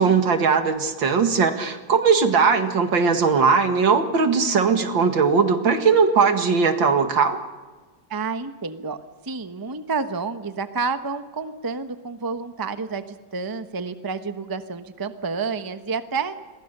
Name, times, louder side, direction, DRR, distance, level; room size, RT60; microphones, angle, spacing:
voice 1, 0.0-7.4, right 5 dB, 80° right, 7 dB, 2.6 m, -19 dB
voice 2, 8.1-9.0 9.2-16.3, right 4 dB, 15° right, 9 dB, 0.8 m, -29 dB
29.0 x 22.5 x 6.8 m, 1.3 s
omnidirectional pair, 2.1 m